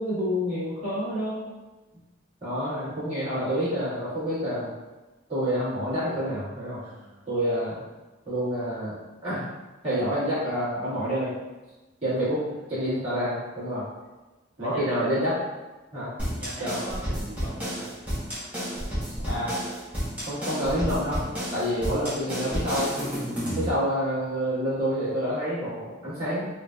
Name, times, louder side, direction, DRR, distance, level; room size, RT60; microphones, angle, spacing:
voice 1, 0.0-1.5 2.4-4.7 5.3-6.8 7.3-7.8 8.2-9.4 9.8-11.3 12.0-12.4 12.7-13.9 14.6-15.3 15.9-16.1 16.6-16.7 19.3-19.5 20.3-21.2 21.5-22.9 23.6-26.5, equal, 30° right, -14 dB, 1.4 m, -28 dB
voice 2, 2.6-3.0 6.8-7.3 12.1-12.6 14.6-15.1 16.3-17.9 21.6-21.8, right 1 dB, 80° right, -3 dB, 0.8 m, -42 dB
sound 1, 16.2-23.7, equal, 5° right, 0.8 m, -31 dB
3.7 x 2.6 x 2.3 m, 1.1 s
head